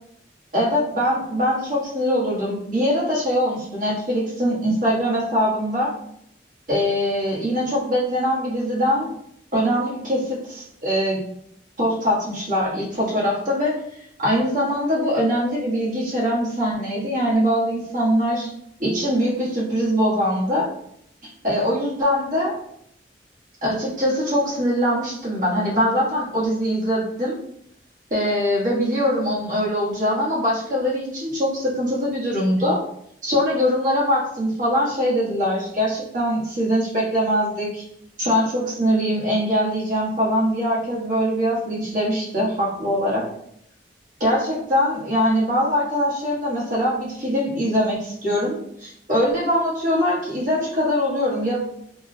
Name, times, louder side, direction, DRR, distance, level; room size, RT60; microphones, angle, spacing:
voice 1, 0.5-5.9 6.7-9.1 9.5-11.2 11.8-13.8 14.2-18.5 18.8-20.7 21.4-22.6 23.6-27.4 28.1-32.8 33.2-37.8 38.2-43.3 44.2-51.6, equal, 50° right, -6 dB, 1.3 m, -22 dB
3.7 x 2.3 x 2.7 m, 0.72 s
head